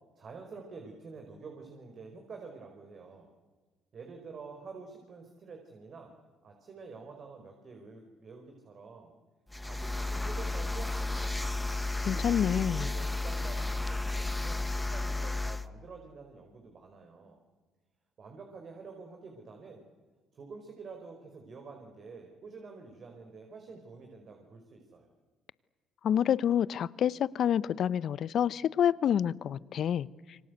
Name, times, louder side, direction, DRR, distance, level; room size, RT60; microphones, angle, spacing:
voice 1, 0.2-3.3 3.9-6.1 6.4-9.1 9.6-11.4 12.1-17.4 18.2-19.9 20.3-25.1, right 4 dB, 50° right, 3 dB, 5.0 m, -48 dB
sound 1, 9.5-15.7, left 2 dB, 10° left, 1.4 m, -33 dB
voice 2, 12.0-12.9 26.0-30.1, left 9 dB, 60° left, 20 dB, 0.8 m, -28 dB
27.5 x 24.5 x 8.2 m, 1.3 s
supercardioid pair, 65°, 0 cm